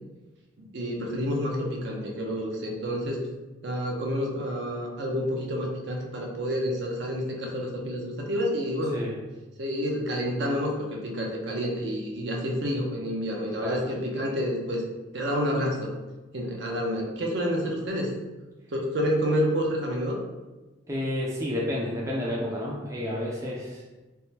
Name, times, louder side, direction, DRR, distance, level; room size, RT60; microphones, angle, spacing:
voice 1, 0.6-3.2 3.6-9.0 9.6-14.8 15.1-15.9 16.3-18.1 18.7-20.2, equal, 65° right, 0 dB, 0.6 m, -29 dB
voice 2, 20.9-23.9, left 1 dB, 15° right, -4 dB, 0.3 m, -30 dB
3.4 x 2.1 x 2.8 m, 1.1 s
head